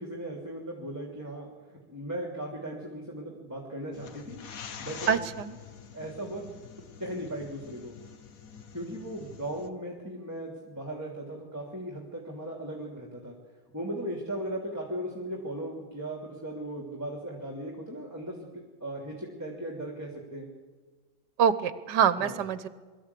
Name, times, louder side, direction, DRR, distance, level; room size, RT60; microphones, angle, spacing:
voice 1, 0.0-4.5 4.8-5.2 5.9-6.4 7.0-8.0 8.7-13.4 13.7-20.5 22.2-22.4, right 1 dB, 10° right, -1 dB, 2.9 m, -37 dB
sound 1, 3.9-9.7, left 7 dB, 55° left, 1.4 m, -46 dB
voice 2, 5.1-5.6 21.4-22.7, right 7 dB, 70° right, 13 dB, 1.5 m, -25 dB
24.0 x 13.5 x 8.4 m, 1.4 s
omnidirectional pair, 1.9 m